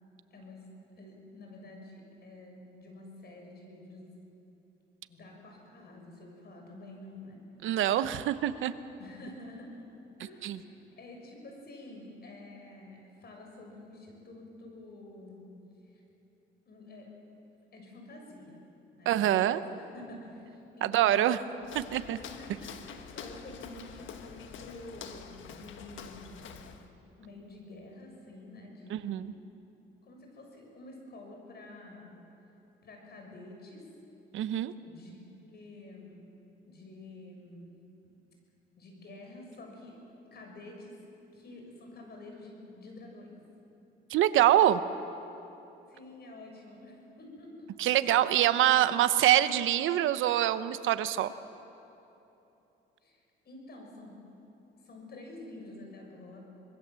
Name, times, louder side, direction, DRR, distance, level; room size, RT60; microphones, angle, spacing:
voice 1, 0.3-0.7 1.0-4.1 5.1-7.4 9.0-9.8 10.2-15.5 15.9-16.0 16.6-17.1 17.7-18.6 19.0-21.8 22.2-22.9 23.1-26.5 26.9-29.3 30.0-32.1 32.8-33.9 34.8-36.2 36.6-37.7 38.8-40.0 40.3-41.0 41.3-43.4 45.9-48.0 48.4-49.3 49.7-49.8 53.0-54.2 54.8-56.4, left 2 dB, 55° left, 1 dB, 6.8 m, -49 dB
voice 2, 7.6-8.7 10.4-10.6 19.1-19.6 20.8-21.4 21.7-22.2 28.9-29.3 34.3-34.7 44.1-44.8 47.8-51.3, right 12 dB, 85° right, 12 dB, 0.9 m, -25 dB
Walk footsteps, 21.6-26.9, left 7 dB, 75° left, 1.5 m, -46 dB
26.0 x 20.0 x 7.6 m, 3.0 s
cardioid pair, 90°, 20 cm